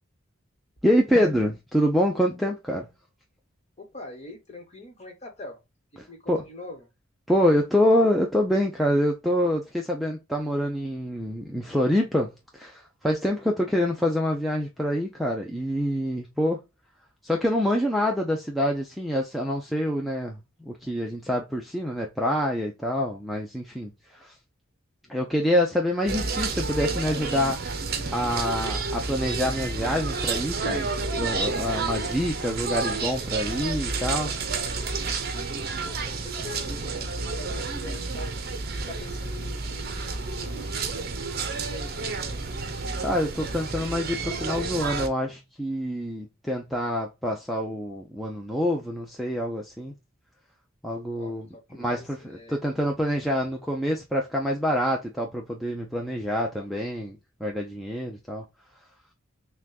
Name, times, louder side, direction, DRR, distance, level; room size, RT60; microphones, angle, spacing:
voice 1, 0.8-2.9 6.0-6.4 7.3-16.6 17.2-24.3 25.1-27.8 28.1-34.3 43.0-49.9 50.8-51.5 51.8-58.4, equal, ahead, 0.5 m, -26 dB
voice 2, 3.8-5.6 5.9-6.9 25.0-25.3 35.8-38.3 38.8-40.7 41.4-42.6 51.1-52.8, left 2 dB, 30° left, 1.2 m, -44 dB
sound 1, 26.1-45.1, right 4 dB, 45° right, 0.7 m, -30 dB
6.2 x 2.3 x 2.3 m
head